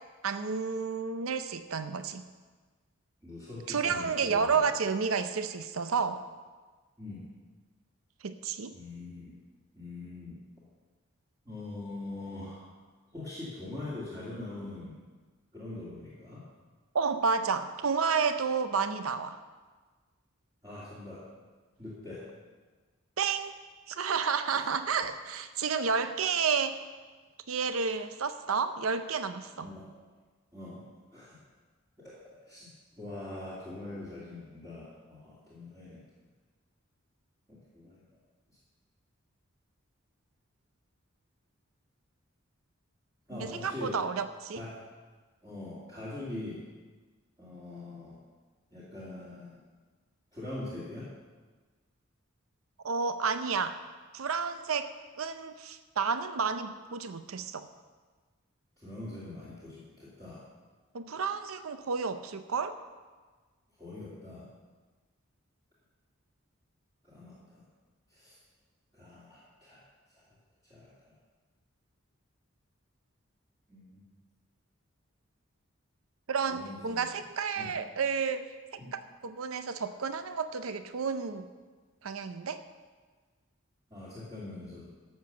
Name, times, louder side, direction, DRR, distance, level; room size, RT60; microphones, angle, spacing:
voice 1, 0.2-2.2 3.7-6.2 8.2-8.7 16.9-19.4 23.2-23.5 23.9-26.8 27.5-29.7 43.3-44.6 52.8-53.8 54.1-57.7 60.9-62.8 76.3-78.5 78.9-81.5 82.0-82.6, right 5 dB, 85° right, 10 dB, 0.6 m, -31 dB
voice 2, 3.2-4.6 7.0-7.2 8.7-9.4 9.7-10.4 11.5-12.7 13.1-15.0 15.5-16.5 20.6-21.3 21.8-22.3 24.5-24.7 27.9-28.0 29.5-29.9 30.5-30.9 31.1-31.4 32.0-32.7 33.0-36.0 37.5-38.0 43.3-44.0 44.5-44.8 45.4-46.7 47.4-48.2 48.7-49.6 50.3-51.1 58.8-60.4 63.8-64.5 67.0-67.6 68.1-68.3 68.9-69.8 70.1-70.3 70.6-71.1 73.7-74.1 76.5-77.1 77.6-77.7 78.8-78.9 83.9-84.9, left 2 dB, 20° right, -10 dB, 2.4 m, -43 dB
12.0 x 6.8 x 6.8 m, 1.4 s
head